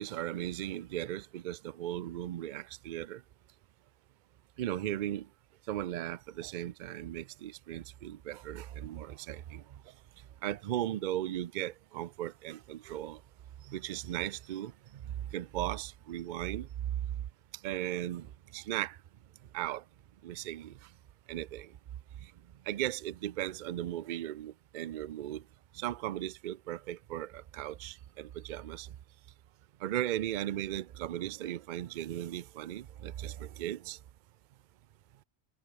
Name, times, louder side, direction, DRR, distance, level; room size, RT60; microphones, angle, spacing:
voice 1, 0.0-3.2 4.6-5.3 5.7-9.6 10.4-13.2 13.7-16.7 17.6-18.3 18.5-19.0 19.5-19.8 20.2-20.7 21.3-21.7 22.7-25.4 25.7-28.9 29.8-34.0, right 12 dB, 85° right, 0.4 m, -37 dB
omnidirectional pair, 1.4 m